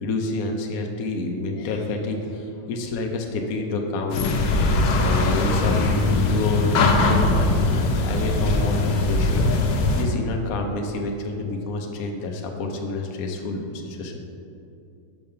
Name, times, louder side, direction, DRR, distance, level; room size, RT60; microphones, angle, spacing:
voice 1, 0.0-4.3 5.0-7.6 8.0-9.5 9.9-14.1, left 3 dB, 60° left, 2 dB, 1.0 m, -28 dB
sound 1, 4.1-10.0, left 2 dB, 80° left, 1.3 m, -21 dB
5.7 x 5.3 x 5.4 m, 2.6 s
omnidirectional pair, 1.9 m